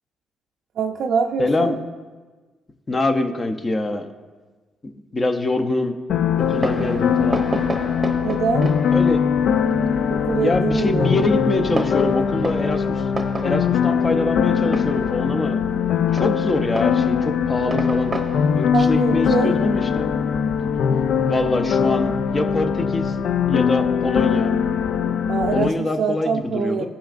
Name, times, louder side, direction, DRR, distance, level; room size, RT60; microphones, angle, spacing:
voice 1, 0.8-1.8 6.8-6.9 8.2-8.7 10.1-11.1 18.7-19.6 25.3-26.9, right 6 dB, 70° right, 1 dB, 0.5 m, -24 dB
voice 2, 1.4-1.8 2.9-4.1 5.1-6.0 6.4-7.5 8.9-9.3 10.4-13.1 13.4-15.6 16.1-18.1 18.5-20.1 21.3-23.2 23.5-24.6 25.5-26.9, left 2 dB, 30° left, 7 dB, 0.7 m, -24 dB
sound 1, 6.1-25.7, left 7 dB, 70° left, 0.3 m, -21 dB
Fireworks, 6.4-20.5, right 2 dB, 25° right, 0.7 m, -33 dB
14.5 x 5.8 x 2.5 m, 1.3 s
cardioid pair, 90°, 0 cm